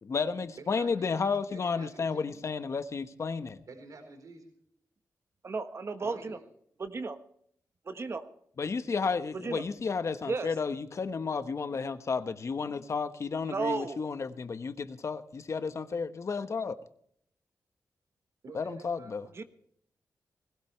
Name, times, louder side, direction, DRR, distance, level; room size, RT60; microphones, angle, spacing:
voice 1, 0.0-3.6 8.6-16.8 18.5-19.3, left 5 dB, 50° left, 1.2 m, -32 dB
voice 2, 0.6-2.3 3.7-4.5 6.0-6.4 18.4-19.4, right 3 dB, 70° right, 4.3 m, -49 dB
voice 3, 5.4-6.4 6.8-7.2 7.8-8.2 9.3-9.6 10.3-10.5 13.4-14.0 19.3-19.4, right 4 dB, 45° right, 1.3 m, -34 dB
20.5 x 17.0 x 3.3 m
wide cardioid pair, 95°, 6 cm